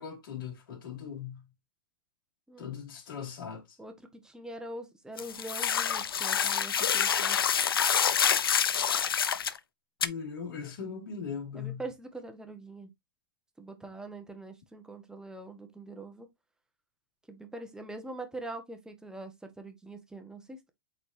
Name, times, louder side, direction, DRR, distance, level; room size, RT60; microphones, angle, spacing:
voice 1, 0.0-1.4 2.6-3.8 10.0-11.8, left 7 dB, 70° left, 2.7 m, -39 dB
voice 2, 3.8-7.4 11.5-12.9 13.6-16.3 17.3-20.7, right 2 dB, 5° right, 1.4 m, -43 dB
sound 1, 5.2-9.6 10.0-10.1, left 8 dB, 90° left, 0.6 m, -27 dB
7.9 x 4.4 x 2.7 m
hypercardioid pair, 120°, 12 cm